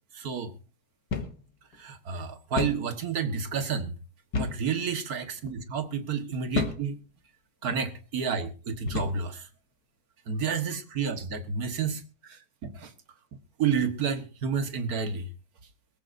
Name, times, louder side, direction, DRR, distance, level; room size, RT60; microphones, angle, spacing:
voice 1, 0.1-0.5 1.8-3.9 4.4-7.0 7.6-9.5 10.3-12.9 13.6-15.3, right 6 dB, 70° right, 1.9 m, -30 dB
sound 1, 1.1-1.4 1.7-1.8 2.6-2.9 4.3-4.7 5.4-5.6 6.5-6.9 7.6-7.8 8.9-9.3, left 4 dB, 85° left, 2.1 m, -31 dB
22.0 x 14.5 x 2.6 m
omnidirectional pair, 1.7 m